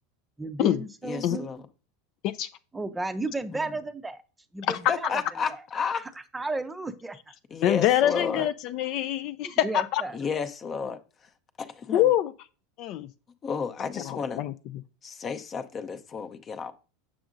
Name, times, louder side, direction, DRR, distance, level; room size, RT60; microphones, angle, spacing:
voice 1, 0.4-1.5 2.7-4.2 4.5-5.2 6.3-7.2 9.4-10.2, right 2 dB, 10° right, 0.6 m, -33 dB
voice 2, 1.0-1.6 3.5-3.7 4.9-6.0 7.5-8.5 10.1-11.0 11.6-12.1 13.4-14.4 15.0-16.7, left 6 dB, 35° left, 0.7 m, -32 dB
voice 3, 7.6-10.0 11.9-12.3 12.8-13.1 14.0-14.5, left 12 dB, 55° left, 0.3 m, -25 dB
7.0 x 6.1 x 2.5 m
hypercardioid pair, 100°, 0 cm